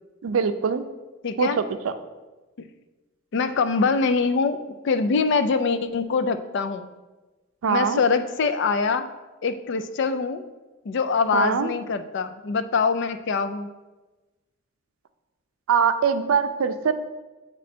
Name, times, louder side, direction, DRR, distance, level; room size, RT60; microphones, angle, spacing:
voice 1, 0.2-0.8 1.4-1.9 7.6-8.0 11.3-11.7 15.7-16.9, right 6 dB, 85° right, 10 dB, 0.4 m, -23 dB
voice 2, 1.2-1.6 2.6-2.7 3.3-6.9 7.7-9.1 9.4-10.4 10.8-13.7, left 4 dB, 60° left, 10 dB, 0.4 m, -24 dB
8.4 x 3.0 x 4.3 m, 1.2 s
head